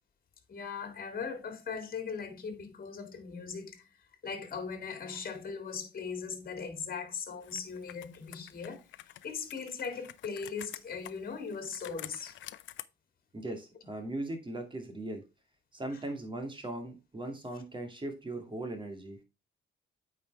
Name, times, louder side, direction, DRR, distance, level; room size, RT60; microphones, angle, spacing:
voice 1, 0.5-3.8 4.2-12.4 15.9-16.0, left 5 dB, 45° left, 2.2 m, -39 dB
Computer keyboard, 7.4-12.8, left 13 dB, 70° left, 0.6 m, -48 dB
voice 2, 13.3-15.2 15.7-19.2, right 1 dB, 25° right, 2.5 m, -39 dB
8.5 x 5.1 x 3.4 m
cardioid pair, 90°, 20 cm